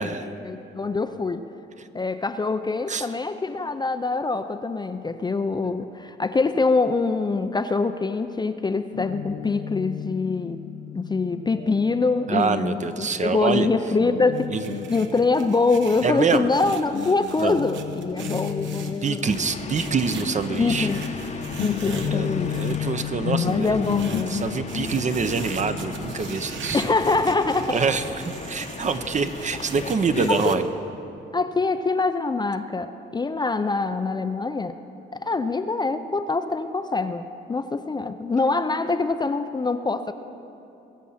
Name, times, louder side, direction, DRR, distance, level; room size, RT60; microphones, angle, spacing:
voice 1, 0.0-1.4 1.9-10.6 10.9-14.5 14.9-19.3 20.6-21.0 21.6-22.8 23.4-24.4 26.7-27.8 30.3-30.6 31.3-34.8 35.1-40.1, left 3 dB, 20° left, 9 dB, 0.5 m, -24 dB
Guitar, 8.9-16.6 16.9-27.4, left 9 dB, 75° left, 0.8 m, -34 dB
voice 2, 12.3-13.7 14.5-14.7 16.0-16.5 17.4-17.6 19.0-20.9 22.0-23.8 24.3-26.8 27.7-30.6, right 5 dB, 35° right, 9 dB, 0.8 m, -25 dB
sound 1, 14.3-22.8 23.5-30.6, right 5 dB, 70° right, 1.1 m, -39 dB
sound 2, 19.3-30.3, left 4 dB, 35° left, 0.9 m, -37 dB
22.0 x 7.3 x 5.7 m, 2.9 s
cardioid pair, 90°, 20 cm